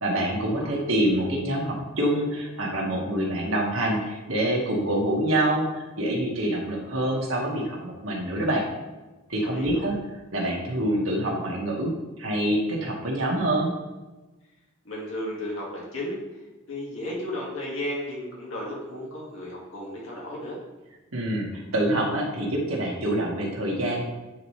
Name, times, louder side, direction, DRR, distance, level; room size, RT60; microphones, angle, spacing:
voice 1, 0.0-5.7 6.0-8.6 9.3-9.9 10.3-11.9 12.2-13.7 21.1-24.0, right 1 dB, 85° right, -2 dB, 1.7 m, -26 dB
voice 2, 9.4-9.9 14.8-16.2 16.7-20.6, left 1 dB, 80° left, -4 dB, 1.9 m, -34 dB
9.3 x 4.3 x 3.2 m, 1.1 s
head